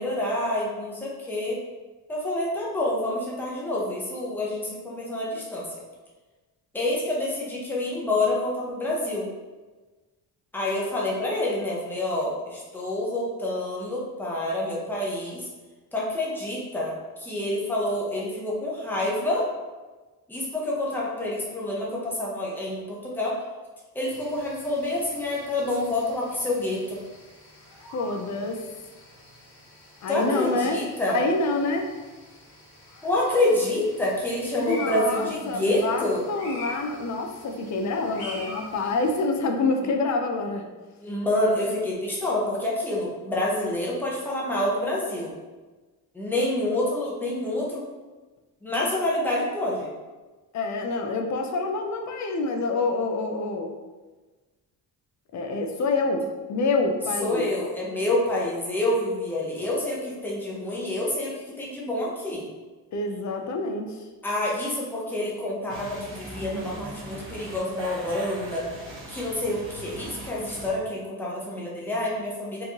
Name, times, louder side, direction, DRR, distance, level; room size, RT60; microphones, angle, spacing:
voice 1, 0.0-1.6 2.1-5.7 6.7-9.3 10.5-15.5 15.9-16.9 17.2-19.5 20.3-23.4 23.9-27.0 30.1-31.2 33.0-36.2 41.0-45.4 46.1-47.8 48.6-49.9 57.2-62.5 64.2-68.6 69.1-72.6, left 1 dB, 5° left, -5 dB, 0.7 m, -27 dB
sound 1, 24.0-39.2, left 1 dB, 60° left, 1.5 m, -44 dB
voice 2, 27.9-28.6 30.0-30.8 31.1-31.9 34.7-40.7 50.5-53.7 55.3-57.5 62.9-64.0, left 3 dB, 45° left, 4 dB, 0.5 m, -27 dB
sound 2, 65.7-70.7, right 2 dB, 30° right, 1.3 m, -40 dB
4.5 x 3.1 x 2.9 m, 1.3 s
cardioid pair, 170°, 40 cm